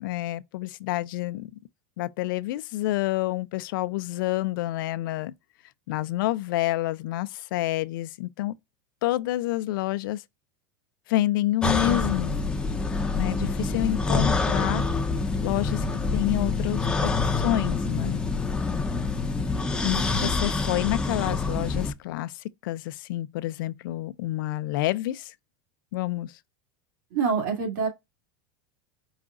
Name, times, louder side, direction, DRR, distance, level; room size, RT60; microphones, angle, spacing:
voice 1, 0.0-1.5 2.0-5.3 5.9-8.6 9.0-10.2 11.1-12.4 13.2-14.9 15.4-15.9 16.1-18.2 19.8-25.3 25.9-26.4, left 16 dB, 80° left, 0.4 m, -28 dB
sound 1, 11.6-21.9, left 3 dB, 10° left, 0.5 m, -26 dB
voice 2, 27.1-27.9, right 5 dB, 70° right, 2.1 m, -25 dB
4.9 x 2.4 x 3.6 m
supercardioid pair, 155°, 11 cm